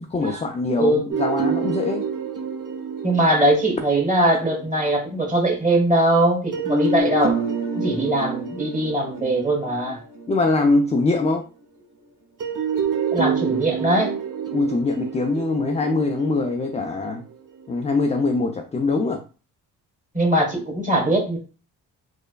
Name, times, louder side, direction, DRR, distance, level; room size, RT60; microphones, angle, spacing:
voice 1, 0.0-2.0 10.3-11.4 14.5-17.2 17.7-19.2, left 3 dB, 15° left, 4 dB, 0.3 m, -22 dB
sound 1, 1.1-5.0 6.5-11.0 12.4-17.6, right 4 dB, 40° right, 1.0 m, -28 dB
voice 2, 3.0-7.5 7.7-10.0 13.1-14.1 20.1-21.4, right 1 dB, 15° right, 1 dB, 1.4 m, -21 dB
3.2 x 2.1 x 2.3 m, 0.34 s
supercardioid pair, 50°, 46 cm